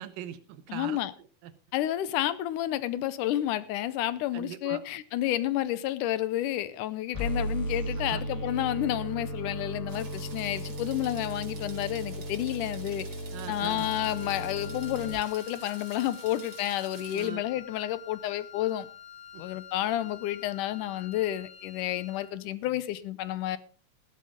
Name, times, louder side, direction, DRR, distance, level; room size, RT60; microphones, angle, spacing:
voice 1, 0.0-1.5 4.3-4.8 8.0-8.2 13.3-13.9 17.1-17.4 19.3-19.4, right 10 dB, 85° right, 2.7 m, -41 dB
voice 2, 0.7-1.1 1.7-13.1 13.5-18.9 19.4-23.6, left 13 dB, 80° left, 2.2 m, -30 dB
sound 1, 7.1-15.1, equal, 5° left, 4.1 m, -36 dB
sound 2, 9.9-17.3, right 4 dB, 35° right, 2.7 m, -50 dB
Wind instrument woodwind instrument, 13.5-22.4, left 10 dB, 60° left, 1.5 m, -47 dB
15.0 x 12.5 x 3.7 m
omnidirectional pair, 3.8 m